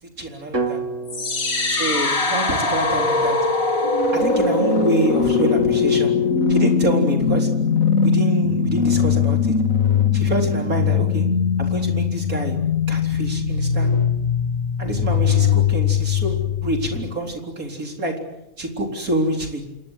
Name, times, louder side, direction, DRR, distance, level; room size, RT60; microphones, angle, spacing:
voice 1, 0.2-0.8 1.7-3.4 4.1-6.1 6.5-7.5 8.0-9.5 10.1-11.2 11.6-12.6 12.9-13.9 14.8-18.1 18.6-19.6, right 1 dB, 75° right, 2 dB, 4.5 m, -26 dB
sound 1, 0.5-4.6, right 3 dB, 60° right, 3.0 m, -33 dB
sound 2, 1.1-17.1, left 5 dB, 70° left, 3.3 m, -20 dB
28.0 x 22.0 x 8.2 m, 0.85 s
omnidirectional pair, 1.5 m